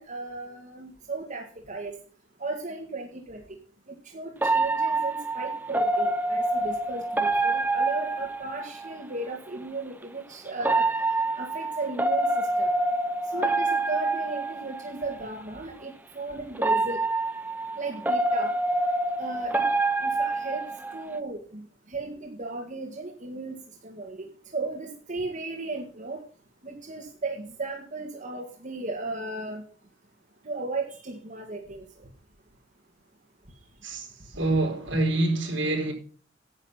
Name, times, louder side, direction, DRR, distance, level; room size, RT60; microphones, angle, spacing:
voice 1, 0.0-1.9 2.4-3.4 4.1-10.9 11.4-12.3 12.6-12.7 13.3-17.0 17.8-18.5 19.2-19.7 20.0-20.6 20.9-21.6 21.9-23.6 23.8-24.3 24.5-26.2 26.6-29.6 30.5-31.8, right 3 dB, 45° right, 1.8 m, -35 dB
sound 1, 4.4-9.0 10.6-15.2 16.5-21.2, right 2 dB, 10° right, 0.7 m, -26 dB
voice 2, 33.8-35.9, right 2 dB, 70° right, 4.0 m, -26 dB
10.5 x 8.3 x 5.6 m
head